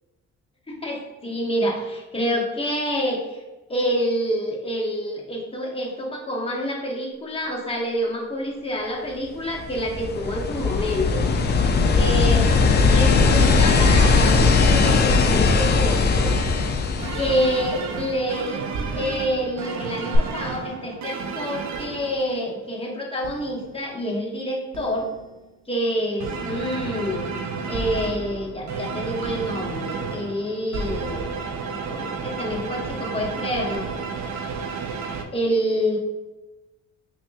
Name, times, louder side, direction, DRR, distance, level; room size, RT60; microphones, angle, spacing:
voice 1, 0.7-3.4 3.7-11.2 11.9-16.4 17.1-25.1 25.7-27.3 27.7-31.3 31.7-33.9 35.3-36.0, equal, 20° left, -2 dB, 0.8 m, -27 dB
sound 1, 9.5-18.0 20.1-20.2, left 4 dB, 35° left, 0.4 m, -19 dB
sound 2, 17.0-22.6 23.2-23.8 24.7-25.4 26.2-35.2, right 5 dB, 65° right, 0.5 m, -32 dB
5.4 x 2.6 x 2.3 m, 1.1 s
cardioid pair, 90°, 30 cm